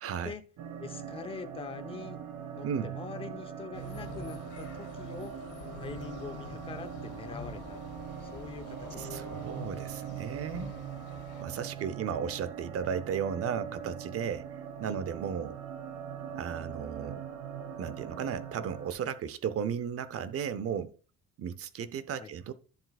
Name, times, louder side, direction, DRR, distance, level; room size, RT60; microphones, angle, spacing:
voice 1, 0.0-0.3 2.6-2.9 9.0-10.7 11.4-15.6 16.3-17.2 17.8-21.0 21.4-22.5, right 7 dB, 50° right, 0.7 m, -35 dB
sound 1, 0.6-18.9, right 8 dB, 85° right, 1.4 m, -42 dB
voice 2, 0.8-2.2 2.5-5.4 5.8-9.1 11.6-12.4 14.8-15.0 22.2-22.3, left 5 dB, 20° left, 0.7 m, -44 dB
sound 2, 3.7-11.4, left 6 dB, 50° left, 2.2 m, -47 dB
11.0 x 7.5 x 2.4 m
cardioid pair, 140°, 31 cm